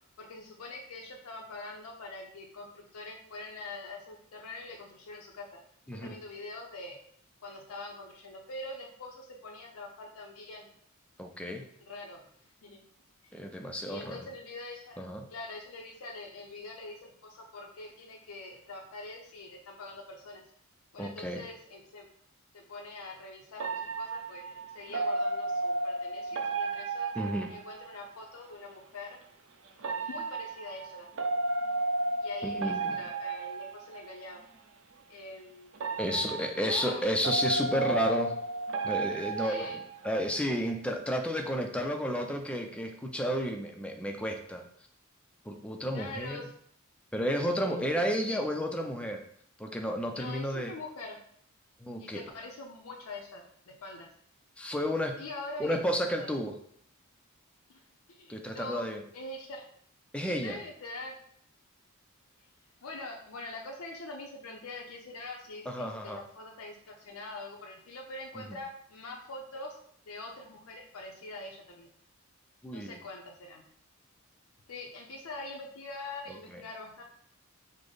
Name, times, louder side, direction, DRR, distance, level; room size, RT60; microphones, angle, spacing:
voice 1, 0.2-5.5 5.9-7.0 7.4-10.7 11.9-12.2 12.6-12.8 13.3-13.4 13.8-15.0 15.3-20.4 20.9-22.1 22.5-23.7 24.0-27.1 27.5-29.2 30.0-31.1 32.2-34.4 35.1-35.8 36.1-37.0 39.4-39.8 45.9-46.5 47.7-47.9 50.1-51.2 52.0-54.1 55.2-55.8 56.2-56.3 57.7-57.8 58.1-58.9 59.1-59.6 60.3-61.1 62.8-69.8 70.1-71.9 72.7-73.6 74.7-77.0, left 2 dB, 85° left, 0 dB, 0.6 m, -44 dB
voice 2, 11.2-11.6 13.3-14.3 15.0-15.3 21.0-21.4 27.1-27.5 32.4-33.0 36.0-38.4 38.8-44.6 45.5-46.5 47.1-49.2 49.6-50.7 51.8-52.2 54.6-55.2 55.6-56.6 58.3-59.0 60.1-60.6 65.7-66.2 68.5-68.6 72.6-73.0 76.3-76.6, equal, 5° left, 3 dB, 0.4 m, -32 dB
sound 1, 23.6-28.2 29.8-34.4 35.7-40.4, right 2 dB, 65° right, 0.4 m, -33 dB
4.9 x 2.0 x 3.9 m, 0.64 s
head